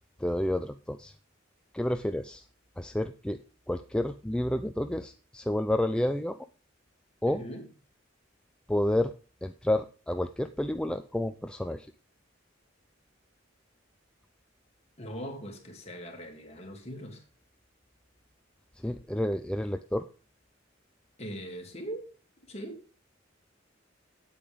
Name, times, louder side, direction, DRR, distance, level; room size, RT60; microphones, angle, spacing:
voice 1, 0.2-1.1 1.7-2.5 2.8-3.4 3.7-6.4 7.2-7.5 8.7-9.1 9.4-11.9 18.7-20.1, left 1 dB, 5° left, 0.4 m, -30 dB
voice 2, 7.3-7.6 15.0-17.2 21.2-22.1 22.5-22.8, equal, 35° left, 2.8 m, -40 dB
9.0 x 8.7 x 5.2 m
head